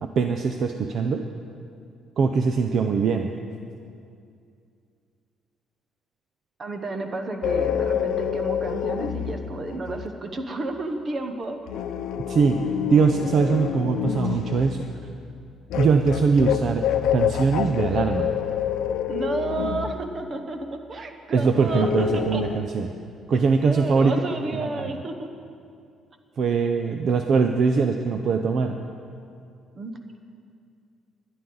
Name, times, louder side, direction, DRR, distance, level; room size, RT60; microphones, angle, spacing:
voice 1, 0.0-1.2 2.2-3.3 12.3-12.6 12.9-14.8 15.7-16.9 17.1-18.3 21.3-22.9 23.3-24.1 24.6-24.8 26.4-28.8, right 5 dB, 45° right, 5 dB, 0.5 m, -22 dB
voice 2, 6.6-11.6 19.1-22.4 23.6-25.3 29.7-30.2, right 2 dB, 30° right, 6 dB, 0.9 m, -31 dB
sound 1, 7.4-10.1 11.7-14.9 15.7-20.0 21.7-22.6, left 9 dB, 80° left, 0.6 m, -27 dB
20.0 x 11.0 x 3.9 m, 2.4 s
cardioid pair, 170°, 0 cm